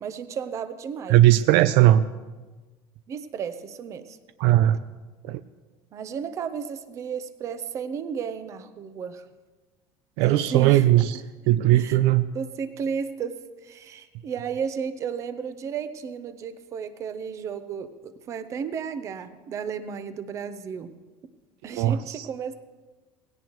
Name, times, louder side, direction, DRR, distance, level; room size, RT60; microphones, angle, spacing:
voice 1, 0.0-1.3 1.5-1.7 3.1-4.2 5.9-9.2 10.2-10.9 11.7-12.0 12.3-13.4 13.6-20.9 21.6-22.5, right 7 dB, 30° right, 11 dB, 0.7 m, -33 dB
voice 2, 1.1-2.0 4.4-4.8 5.2-5.4 10.2-11.2 11.5-12.3 21.7-22.3, right 14 dB, 65° right, 13 dB, 0.4 m, -18 dB
19.0 x 17.0 x 3.1 m, 1.3 s
cardioid pair, 170°, 10 cm